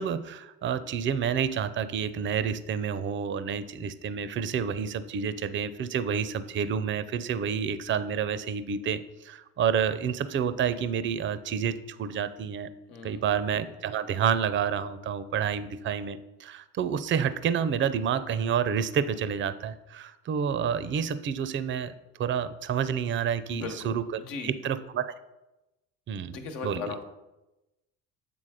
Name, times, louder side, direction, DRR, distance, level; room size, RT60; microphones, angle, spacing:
voice 1, 0.0-12.7 13.0-21.9 22.2-25.2 26.1-26.4 26.6-26.9, right 7 dB, 25° right, 14 dB, 0.4 m, -29 dB
voice 2, 12.9-13.3 23.5-24.6 26.3-27.1, left 4 dB, 75° left, 4 dB, 1.2 m, -38 dB
7.6 x 3.6 x 4.9 m, 0.99 s
hypercardioid pair, 70°, 49 cm